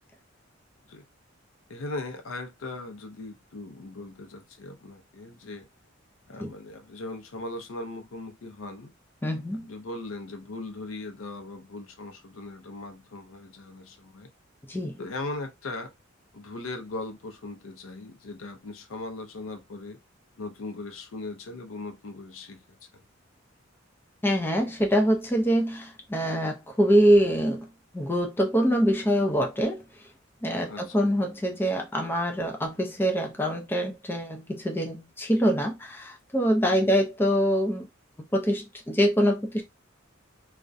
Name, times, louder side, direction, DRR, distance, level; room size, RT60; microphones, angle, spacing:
voice 1, 1.7-5.7 6.3-8.9 9.6-14.3 15.0-15.9 16.3-20.0 20.4-22.6 22.9-23.0 30.7-31.1 36.6-37.0, left 2 dB, 80° left, 0.5 m, -39 dB
voice 2, 9.2-9.7 14.7-15.0 24.2-27.7 27.9-29.8 30.4-37.9 38.3-39.6, equal, 10° left, 0.4 m, -24 dB
2.4 x 2.1 x 2.5 m
head